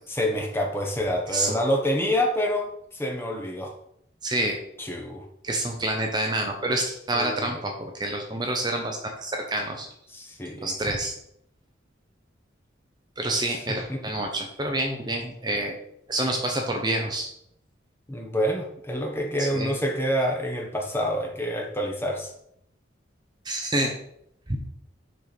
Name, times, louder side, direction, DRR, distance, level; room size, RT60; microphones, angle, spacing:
voice 1, 0.1-3.7 4.8-5.3 7.1-7.6 10.1-10.7 13.5-14.0 18.1-22.3, equal, 10° left, 0 dB, 1.1 m, -27 dB
voice 2, 4.2-4.6 5.4-9.9 10.6-11.1 13.2-15.7 16.1-17.3 19.4-19.7 23.4-23.9 24.5-24.7, right 1 dB, 20° right, 2 dB, 0.8 m, -28 dB
6.4 x 4.6 x 5.2 m, 0.73 s
head